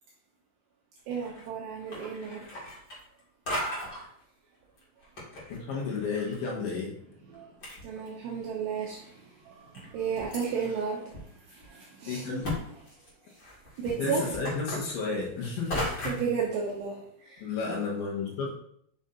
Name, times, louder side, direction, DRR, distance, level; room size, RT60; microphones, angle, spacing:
sound 1, 1.1-1.5 1.8-3.2 3.5-4.0 4.8-6.4 6.6-6.7 7.3-7.4 7.6-8.4 9.0-9.1 9.7-10.5 11.1-11.2 11.6-11.7 12.4-12.6 12.9-16.3, left 1 dB, 40° left, 1.7 m, -36 dB
voice 1, 1.1-2.7 7.3-7.5 7.8-12.3 13.2-13.3 13.8-14.3 15.8-17.5, right 6 dB, 75° right, -3 dB, 2.5 m, -34 dB
voice 2, 5.5-6.9 12.1-12.5 14.0-16.2 17.4-18.5, left 4 dB, 70° left, -2 dB, 3.4 m, -32 dB
9.1 x 6.3 x 2.8 m, 0.67 s
omnidirectional pair, 6.0 m